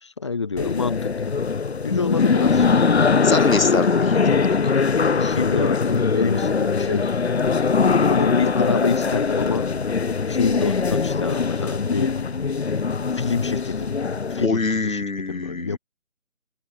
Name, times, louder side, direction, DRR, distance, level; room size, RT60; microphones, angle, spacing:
voice 1, 0.0-1.3 1.8-2.9 4.8-7.1 7.5-7.7 8.1-9.7 10.3-12.5 13.1-13.9 14.3-15.8, left 4 dB, 20° left, 1.3 m, -27 dB
sound 1, 0.6-14.5, left 5 dB, 50° left, 0.7 m, -21 dB
voice 2, 3.2-4.5 14.4-15.8, left 3 dB, 80° left, 2.0 m, -24 dB
open air
figure-of-eight pair, 165°, 40 cm